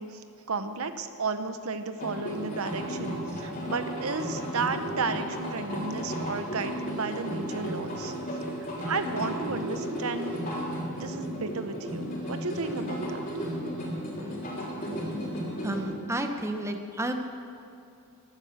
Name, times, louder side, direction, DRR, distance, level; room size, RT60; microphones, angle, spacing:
voice 1, 0.0-8.1 8.8-10.4 11.0-13.2, right 4 dB, 70° right, 9 dB, 0.9 m, -33 dB
sound 1, 2.0-15.8, equal, 35° left, 3.9 m, -34 dB
voice 2, 15.6-17.1, right 1 dB, 15° right, 5 dB, 0.9 m, -31 dB
15.5 x 12.5 x 6.6 m, 2.6 s
head